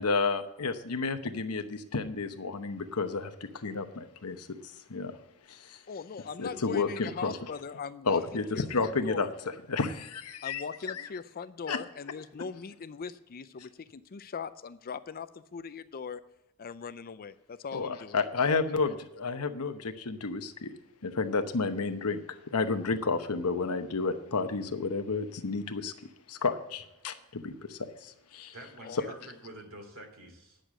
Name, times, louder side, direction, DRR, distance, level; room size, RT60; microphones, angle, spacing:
voice 1, 0.0-4.5 4.9-5.2 5.5-5.8 6.4-7.4 8.1-9.3 9.7-10.6 10.9-11.0 11.7-11.8 17.7-20.7 21.0-25.9 26.3-28.5, left 4 dB, 80° left, 8 dB, 0.9 m, -31 dB
voice 2, 5.9-9.3 10.4-16.2 16.6-18.2 28.8-29.1, left 6 dB, 40° left, 13 dB, 0.5 m, -40 dB
voice 3, 28.5-30.6, right 1 dB, 65° right, 3 dB, 2.6 m, -47 dB
10.0 x 6.6 x 7.4 m, 0.92 s
head